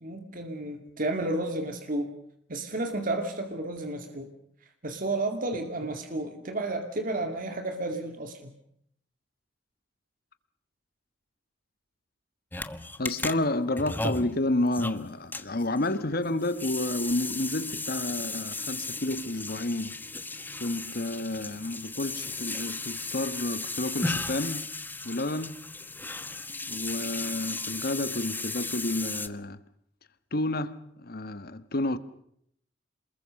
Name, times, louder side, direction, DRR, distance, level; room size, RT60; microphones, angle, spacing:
voice 1, 0.0-2.1 2.5-4.3 4.8-8.5, right 2 dB, 45° right, 2.3 m, -32 dB
sound 1, 12.5-29.3, left 3 dB, 10° left, 1.1 m, -36 dB
voice 2, 13.0-20.0 20.6-24.7 25.0-25.6 26.7-29.6 30.3-32.0, left 2 dB, 55° left, 1.4 m, -30 dB
28.0 x 21.0 x 6.5 m
head